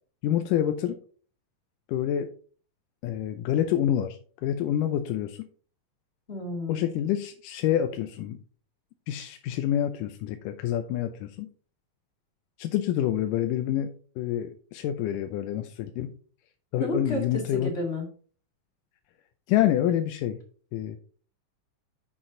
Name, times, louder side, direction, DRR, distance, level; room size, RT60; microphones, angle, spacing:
voice 1, 0.2-1.0 1.9-2.3 3.0-5.5 6.7-8.4 9.1-11.5 12.6-16.1 16.7-17.7 19.5-20.4 20.7-21.0, left 11 dB, 90° left, 7 dB, 2.3 m, -27 dB
voice 2, 6.3-6.9 16.8-18.0, left 1 dB, 25° left, 1 dB, 1.8 m, -31 dB
7.7 x 6.2 x 3.8 m, 0.42 s
omnidirectional pair, 3.7 m